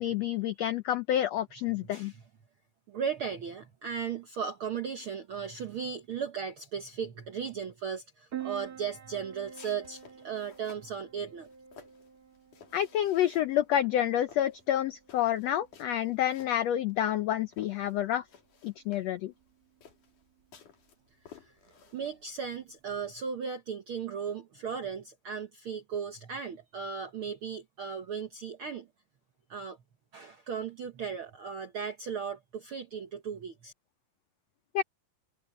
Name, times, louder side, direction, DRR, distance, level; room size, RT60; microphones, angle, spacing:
voice 1, 0.0-2.1 12.7-18.2 18.6-19.3 34.7-34.8, left 11 dB, 90° left, 1.4 m, -28 dB
voice 2, 2.9-11.5 21.3-21.5 21.9-28.9 29.5-29.8 30.1-33.7, right 6 dB, 70° right, 1.2 m, -36 dB
Piano, 8.3-23.3, right 10 dB, 50° right, 1.1 m, -50 dB
sound 1, 9.4-10.9 11.4-13.6 13.9-17.2 17.5-22.6, left 7 dB, 65° left, 4.3 m, -56 dB
omnidirectional pair, 3.9 m